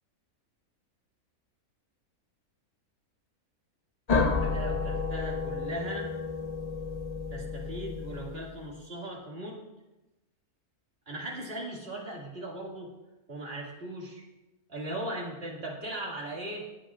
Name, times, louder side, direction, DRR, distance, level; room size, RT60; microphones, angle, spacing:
sound 1, 4.1-8.8, left 4 dB, 40° left, 0.6 m, -31 dB
voice 1, 4.3-6.1 7.3-9.6 11.1-12.9 13.3-14.2 14.7-16.6, right 1 dB, 40° right, -3 dB, 2.5 m, -38 dB
18.0 x 9.1 x 2.5 m, 1.0 s
omnidirectional pair, 1.6 m